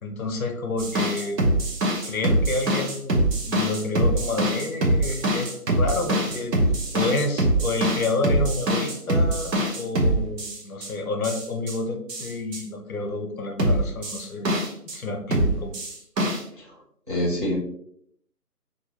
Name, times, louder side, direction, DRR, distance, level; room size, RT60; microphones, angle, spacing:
voice 1, 0.0-1.5 2.1-6.5 6.9-14.5 14.9-15.7, left 2 dB, 60° left, 5 dB, 0.6 m, -29 dB
sound 1, 0.8-10.9 11.2-11.8 12.1-12.6 13.6-15.0 15.3-16.4, right 1 dB, 80° right, 0.9 m, -23 dB
voice 2, 17.1-17.6, left 1 dB, 35° right, -5 dB, 0.5 m, -25 dB
2.6 x 2.0 x 2.8 m, 0.69 s
figure-of-eight pair, 170°, 48 cm